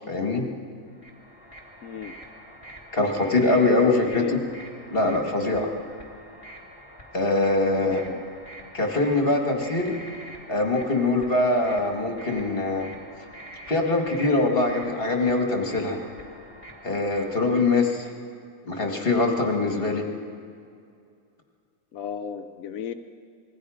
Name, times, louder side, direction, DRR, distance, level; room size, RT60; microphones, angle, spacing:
voice 1, 0.1-0.5 2.9-4.4 4.9-5.7 7.1-8.0 8.7-10.0 10.5-12.9 13.7-16.0 16.8-18.1 18.6-20.1, left 2 dB, 45° left, 2 dB, 2.2 m, -23 dB
sound 1, 0.9-17.9, right 1 dB, 25° left, 2.8 m, -46 dB
voice 2, 1.8-2.2 4.0-4.3 7.8-8.2 21.9-22.9, left 8 dB, 80° left, 8 dB, 1.2 m, -35 dB
27.0 x 21.0 x 5.0 m, 2.3 s
omnidirectional pair, 1.4 m